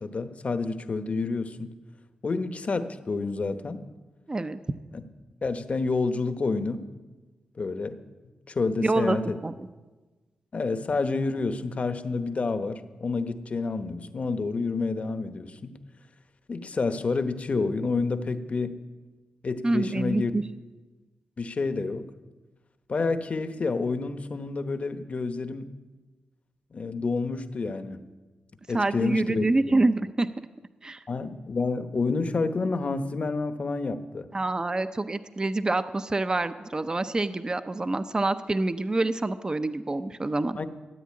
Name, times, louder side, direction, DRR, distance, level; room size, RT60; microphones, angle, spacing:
voice 1, 0.0-1.7 2.2-3.8 4.9-5.0 5.4-6.9 7.6-8.0 8.5-9.4 10.5-15.8 16.5-18.8 19.4-20.3 21.4-22.1 22.9-25.7 26.7-28.0 28.7-29.5 31.1-34.3 40.5-40.7, left 4 dB, 45° left, 10 dB, 1.0 m, -29 dB
voice 2, 4.3-4.6 8.8-9.2 9.4-9.5 19.6-20.4 28.7-30.3 30.8-31.0 34.3-40.6, right 2 dB, 25° right, 11 dB, 0.6 m, -26 dB
14.0 x 9.2 x 8.6 m, 1.3 s
cardioid pair, 85°, 3 cm